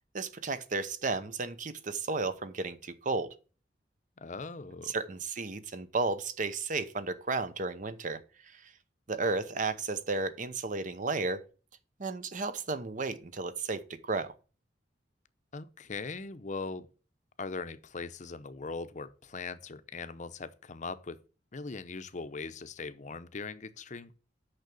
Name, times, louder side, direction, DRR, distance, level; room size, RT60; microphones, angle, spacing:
voice 1, 0.1-3.3 4.8-8.7 9.1-11.4 12.0-14.3, right 3 dB, 45° right, 0.8 m, -33 dB
voice 2, 4.2-4.9 15.5-16.9 17.4-21.2 21.5-24.2, left 4 dB, 45° left, 0.7 m, -40 dB
6.5 x 5.9 x 6.8 m
head